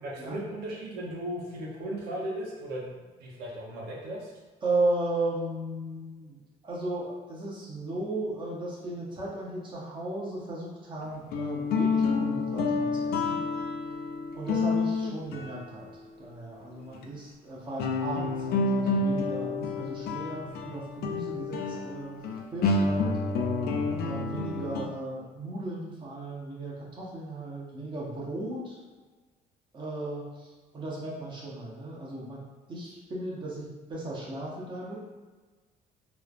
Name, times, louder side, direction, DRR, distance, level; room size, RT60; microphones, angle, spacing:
voice 1, 0.0-4.3, right 1 dB, 80° right, -3 dB, 0.7 m, -36 dB
voice 2, 4.6-13.4 14.3-15.9 16.2-22.2 22.5-23.2 24.0-28.8 29.7-32.4 32.7-35.0, right 2 dB, 30° right, -5 dB, 0.8 m, -35 dB
sound 1, 11.0-16.3 16.9-17.0 17.8-24.9, left 3 dB, 65° left, 0.4 m, -29 dB
3.1 x 2.0 x 2.4 m, 1.3 s
cardioid pair, 110°, 17 cm